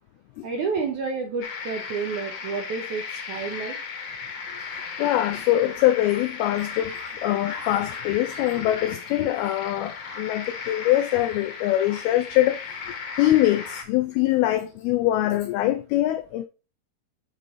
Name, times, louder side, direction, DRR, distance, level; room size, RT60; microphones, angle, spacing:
voice 1, 0.4-3.8, right 5 dB, 75° right, 1.8 m, -30 dB
sound 1, 1.4-13.8, left 5 dB, 60° left, 1.6 m, -36 dB
voice 2, 4.6-16.4, left 14 dB, 90° left, 2.2 m, -23 dB
8.4 x 4.9 x 3.7 m
omnidirectional pair, 5.0 m